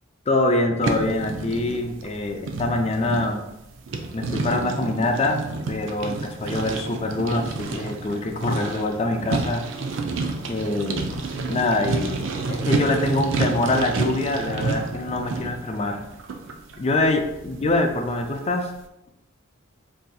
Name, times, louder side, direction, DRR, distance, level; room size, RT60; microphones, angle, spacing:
voice 1, 0.3-3.4 4.1-9.6 10.4-11.1 11.5-12.2 12.5-16.0 16.8-18.7, left 2 dB, 30° left, 4 dB, 0.4 m, -24 dB
sound 1, 0.8-18.5, right 3 dB, 65° right, 0.4 m, -30 dB
3.9 x 2.7 x 2.3 m, 0.87 s
head